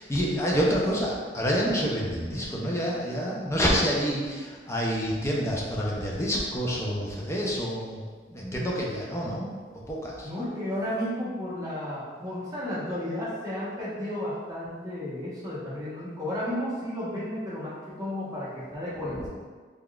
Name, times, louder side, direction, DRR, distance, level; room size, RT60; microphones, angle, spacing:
voice 1, 0.0-9.5 9.9-10.3 19.1-19.3, equal, 15° left, -3 dB, 0.5 m, -28 dB
voice 2, 10.2-19.3, left 1 dB, 20° right, -9 dB, 1.0 m, -33 dB
3.9 x 3.4 x 2.3 m, 1.5 s
head